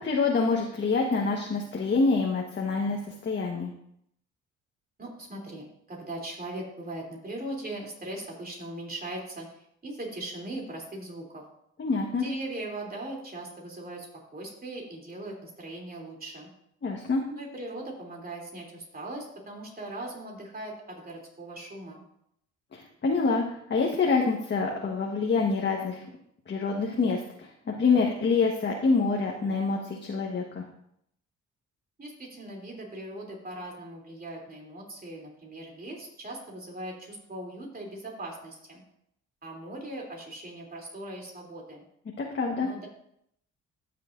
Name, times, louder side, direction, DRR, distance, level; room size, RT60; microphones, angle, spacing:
voice 1, 0.0-3.7 11.8-12.2 16.8-17.2 22.7-23.4 23.7-26.0 26.5-30.6 42.2-42.7, left 4 dB, 40° left, -1 dB, 1.3 m, -26 dB
voice 2, 5.0-11.4 12.1-14.1 14.3-16.5 17.3-22.0 32.0-38.8 39.4-41.8 42.6-42.9, right 1 dB, 30° right, 0 dB, 3.1 m, -39 dB
14.0 x 6.6 x 2.6 m, 0.73 s
cardioid pair, 90°, 30 cm